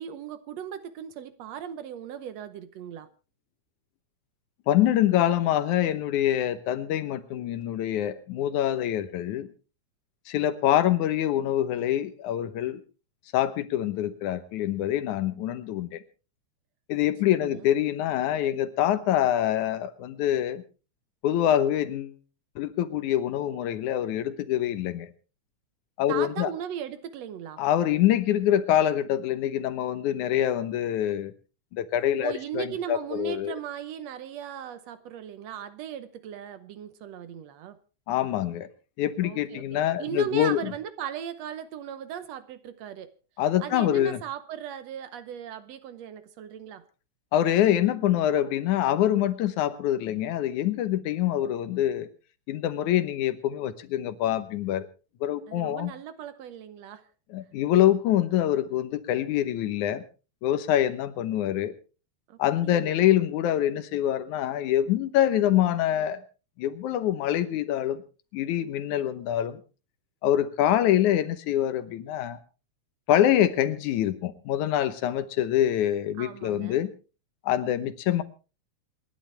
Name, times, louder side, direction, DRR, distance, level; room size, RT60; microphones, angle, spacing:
voice 1, 0.0-3.1 17.3-17.7 26.1-27.6 32.2-37.8 39.2-39.6 40.0-43.1 43.6-46.8 55.5-57.1 62.3-63.1 76.2-76.8, right 9 dB, 70° right, 1.9 m, -37 dB
voice 2, 4.7-9.5 10.3-12.8 13.3-16.0 16.9-20.6 21.2-22.2 22.6-25.1 26.0-26.5 27.6-31.3 31.7-33.6 38.1-38.7 39.0-40.7 43.4-44.2 47.3-52.1 52.5-54.9 55.2-55.9 57.3-60.0 60.4-61.7 62.4-66.2 66.6-68.0 68.3-69.6 70.2-72.4 73.1-76.9 77.4-78.2, left 11 dB, 85° left, 2.5 m, -25 dB
27.0 x 11.0 x 3.3 m
omnidirectional pair, 3.4 m